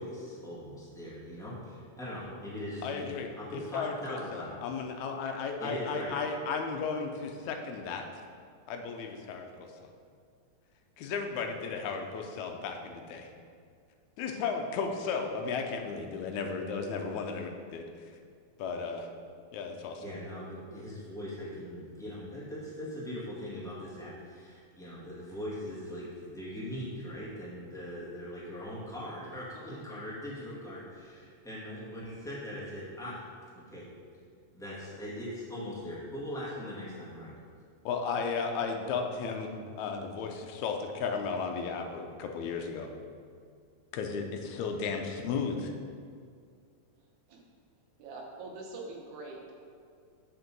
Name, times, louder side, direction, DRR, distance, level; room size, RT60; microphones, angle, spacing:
voice 1, 0.0-3.1 3.3-4.5 5.6-6.2 20.0-33.2 33.5-33.9 34.5-37.3, equal, ahead, -8 dB, 1.2 m, -40 dB
voice 2, 2.8-8.0 8.7-9.7 11.0-13.3 14.2-17.8 18.6-19.1 19.5-20.0 37.9-42.9 43.9-45.7, left 5 dB, 80° left, 4 dB, 2.0 m, -34 dB
voice 3, 48.0-49.6, right 3 dB, 85° right, -1 dB, 2.4 m, -43 dB
6.7 x 4.4 x 6.1 m, 2.2 s
omnidirectional pair, 3.3 m